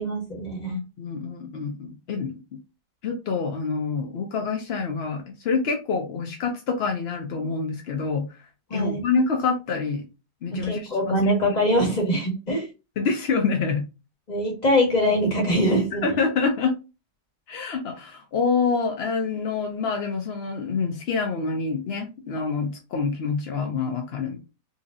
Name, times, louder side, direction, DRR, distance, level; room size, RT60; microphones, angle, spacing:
voice 1, 0.0-0.7 8.7-9.0 10.5-12.7 14.3-16.1, equal, 25° left, 0 dB, 1.2 m, -23 dB
voice 2, 0.7-2.3 3.0-8.4 8.7-10.0 10.4-11.4 13.0-13.8 16.0-16.8 17.5-24.4, left 4 dB, 75° left, 3 dB, 0.5 m, -26 dB
4.1 x 2.7 x 2.5 m, 0.28 s
omnidirectional pair, 1.9 m